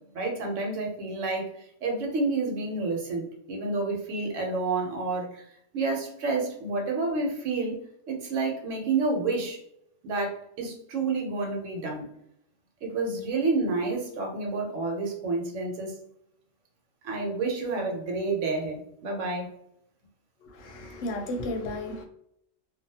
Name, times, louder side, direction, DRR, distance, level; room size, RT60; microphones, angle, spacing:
voice 1, 0.1-5.4 5.7-7.8 8.1-9.6 10.0-12.0 12.8-15.9 17.0-19.5, right 3 dB, 75° right, 1.1 m, -29 dB
voice 2, 20.4-22.0, left 1 dB, 85° left, 1.0 m, -34 dB
2.6 x 2.3 x 2.7 m
omnidirectional pair, 1.3 m